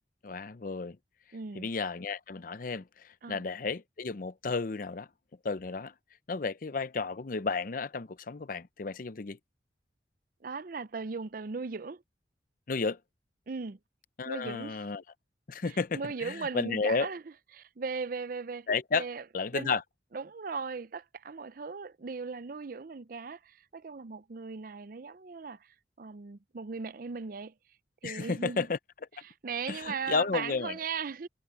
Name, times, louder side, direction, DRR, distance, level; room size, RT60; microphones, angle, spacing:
voice 1, 0.2-1.0 1.6-5.1 5.4-5.9 6.3-9.4 12.7-13.0 14.2-15.0 15.5-17.1 18.7-19.1 19.3-19.8 28.0-28.8 29.7-30.8, left 4 dB, 50° left, 0.6 m, -32 dB
voice 2, 1.3-1.7 3.2-3.4 10.4-12.0 13.5-13.8 14.3-14.8 15.7-17.2 17.5-18.7 18.9-19.2 19.5-19.8 20.1-27.5 28.0-28.7 29.2-31.3, right 5 dB, 50° right, 0.5 m, -38 dB
head